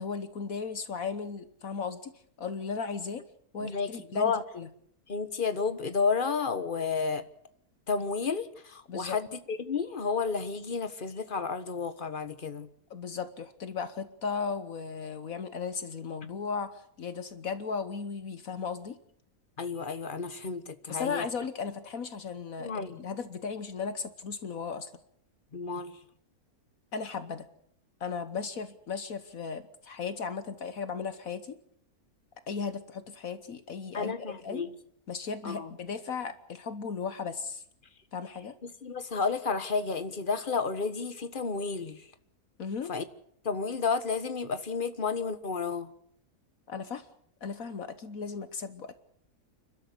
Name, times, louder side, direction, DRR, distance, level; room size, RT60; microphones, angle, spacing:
voice 1, 0.0-2.1 2.4-3.2 3.5-4.7 8.9-9.2 12.9-19.0 20.9-24.9 26.9-27.5 28.0-31.6 32.5-34.6 35.1-37.6 38.1-38.5 42.6-42.9 46.7-47.1 47.4-49.0, left 5 dB, 65° left, 11 dB, 1.5 m, -36 dB
voice 2, 3.6-4.4 5.1-7.2 7.9-12.7 19.6-21.3 22.6-23.0 25.5-26.0 33.9-34.7 35.4-35.7 38.6-42.1 42.9-43.0 43.4-45.9, left 5 dB, 35° left, 11 dB, 1.4 m, -31 dB
29.0 x 13.0 x 8.3 m, 0.68 s
omnidirectional pair, 1.6 m